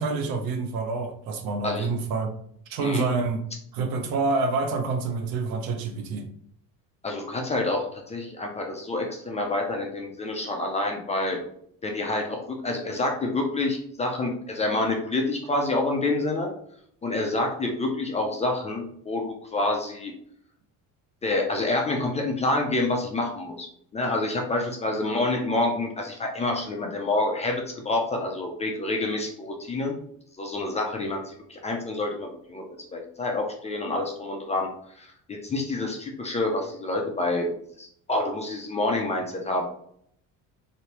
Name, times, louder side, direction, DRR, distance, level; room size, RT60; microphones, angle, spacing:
voice 1, 0.0-2.3 2.7-3.4 3.7-6.3, right 3 dB, 70° right, 6 dB, 0.7 m, -27 dB
voice 2, 7.0-11.4 11.8-16.5 17.0-20.1 21.2-23.7 23.9-30.0 30.4-32.6 32.9-34.7 35.0-37.5 37.8-39.6, left 2 dB, 20° left, 1 dB, 0.3 m, -27 dB
3.2 x 2.6 x 2.8 m, 0.67 s
cardioid pair, 145°, 37 cm